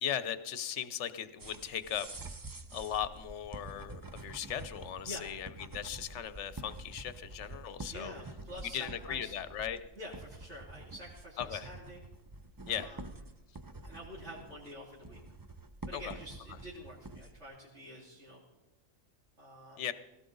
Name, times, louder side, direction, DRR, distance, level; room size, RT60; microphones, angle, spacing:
voice 1, 0.0-2.4 2.7-8.1 8.6-9.8 11.4-11.7 12.7-13.0 15.9-16.2 19.8-19.9, left 9 dB, 65° left, 13 dB, 1.1 m, -38 dB
sound 1, 1.4-17.4, right 2 dB, 30° right, 0.4 m, -48 dB
voice 2, 7.9-9.3 9.9-12.0 12.6-13.0 13.8-15.2 15.9-18.4 19.4-19.8, equal, 60° right, -6 dB, 3.0 m, -47 dB
18.5 x 16.5 x 3.9 m, 0.99 s
omnidirectional pair, 1.4 m